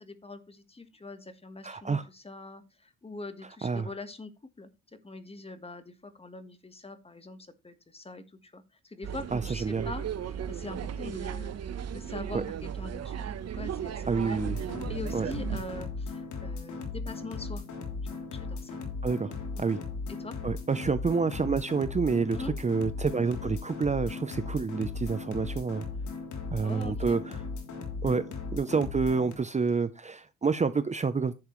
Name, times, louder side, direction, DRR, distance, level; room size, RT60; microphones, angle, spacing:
voice 1, 0.0-4.3 4.6-4.7 5.0-11.5 11.9-13.3 13.5-14.4 14.9-17.6 18.1-18.8 19.6-19.8 20.2-20.4 22.3-22.5 26.6-27.2, left 2 dB, 20° left, 11 dB, 1.4 m, -43 dB
voice 2, 1.6-2.1 3.6-3.9 9.3-9.9 12.3-12.4 14.1-14.6 15.1-15.3 19.0-19.3 19.6-19.8 20.4-25.8 26.5-27.4 28.0-28.2 28.5-31.3, right 5 dB, 25° right, 12 dB, 0.7 m, -28 dB
sound 1, 9.0-15.8, right 8 dB, 55° right, 1.0 m, -36 dB
sound 2, 14.4-29.3, left 4 dB, 75° left, 3.2 m, -37 dB
10.5 x 7.1 x 3.2 m, 0.26 s
cardioid pair, 90°, 30 cm